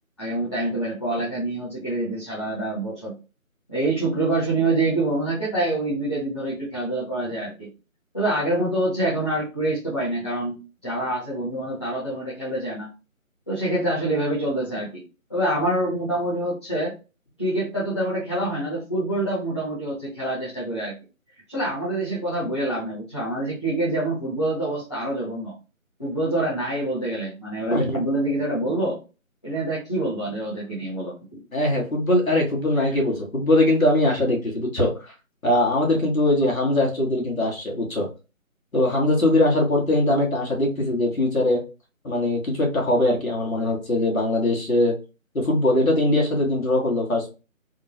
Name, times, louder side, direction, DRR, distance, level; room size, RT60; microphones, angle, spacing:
voice 1, 0.2-3.1 3.7-7.7 8.1-10.6 10.8-12.9 13.5-15.0 15.3-16.9 17.4-20.9 21.5-25.5 26.0-29.0 29.4-31.1, right 1 dB, 20° left, -11 dB, 0.8 m, -26 dB
voice 2, 31.5-35.1 35.4-38.1 38.7-41.6 42.0-44.9 45.3-47.3, left 1 dB, 75° left, 0 dB, 1.5 m, -21 dB
3.6 x 2.1 x 2.8 m, 0.31 s
figure-of-eight pair, 160°, 41 cm